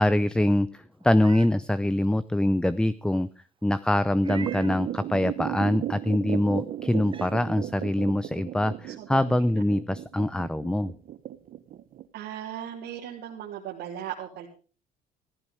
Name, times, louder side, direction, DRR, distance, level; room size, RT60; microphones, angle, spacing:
voice 1, 0.0-3.3 3.6-10.9, left 1 dB, 5° left, 15 dB, 0.6 m, -24 dB
Meow, 1.0-1.5 2.0-2.1 4.2-4.8 6.4-6.5 7.0-7.3, right 6 dB, 30° right, 0.9 m, -43 dB
sound 1, 4.3-12.0, right 12 dB, 60° right, 1.2 m, -35 dB
voice 2, 8.9-9.5 12.1-14.5, right 10 dB, 75° right, -3 dB, 3.3 m, -37 dB
15.0 x 15.0 x 4.8 m, 0.37 s
cardioid pair, 110°, 17 cm